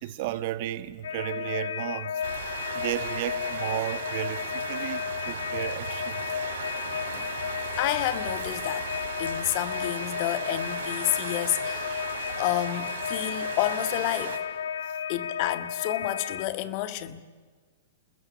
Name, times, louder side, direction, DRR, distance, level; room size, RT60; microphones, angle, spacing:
voice 1, 0.0-2.2 2.7-6.2 12.3-12.4, right 13 dB, 55° right, 1.4 m, -33 dB
sound 1, 1.0-16.5, left 8 dB, 75° left, 0.9 m, -33 dB
sound 2, 2.2-14.4, right 7 dB, 70° right, 3.6 m, -37 dB
voice 2, 6.9-7.2 7.8-8.9 9.2-14.4 15.1-17.2, left 14 dB, 50° left, 1.8 m, -30 dB
29.5 x 21.0 x 7.2 m
hypercardioid pair, 115°, 0 cm